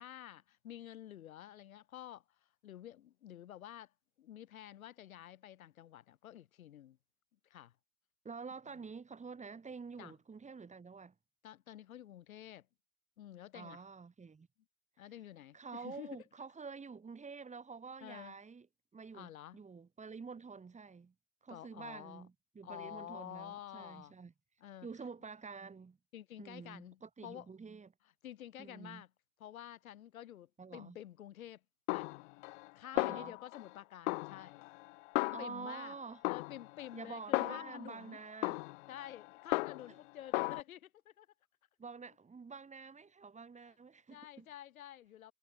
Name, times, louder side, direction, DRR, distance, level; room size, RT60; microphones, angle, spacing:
voice 1, 0.0-7.0 7.4-7.8 10.0-10.1 11.4-12.7 13.2-13.9 15.0-16.3 18.0-18.4 19.1-19.6 21.5-22.2 22.6-24.2 24.6-24.9 26.1-27.5 28.2-29.1 29.4-31.6 31.9-32.2 32.7-34.7 35.4-36.0 36.2-38.2 38.9-41.3 43.6-43.8 44.1-45.3, left 12 dB, 80° left, 3.5 m, -50 dB
voice 2, 8.2-11.1 13.5-14.5 15.5-18.7 18.9-21.1 21.4-24.3 24.8-26.0 26.4-27.9 28.6-29.0 30.6-31.0 32.9-33.3 35.3-36.2 36.9-38.6 41.8-44.5, right 5 dB, 15° right, 4.5 m, -48 dB
Snare drum, 31.9-32.7 33.0-33.7 34.1-35.8 36.2-37.9 38.4-40.0 40.3-40.6, left 24 dB, 60° left, 1.0 m, -36 dB
hypercardioid pair, 105°, 41 cm